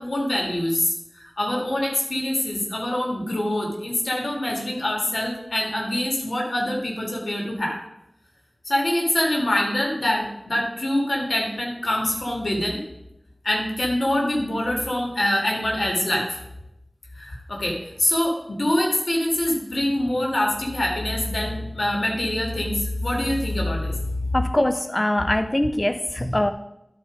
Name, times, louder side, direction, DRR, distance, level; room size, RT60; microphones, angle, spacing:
voice 1, 0.0-7.8 8.6-12.8 13.4-16.4 17.2-24.0 26.2-26.4, left 1 dB, 90° left, -1 dB, 2.0 m, -25 dB
voice 2, 24.3-26.5, left 1 dB, 30° left, 9 dB, 0.4 m, -23 dB
12.5 x 4.5 x 5.0 m, 0.87 s
wide cardioid pair, 50°, 0 cm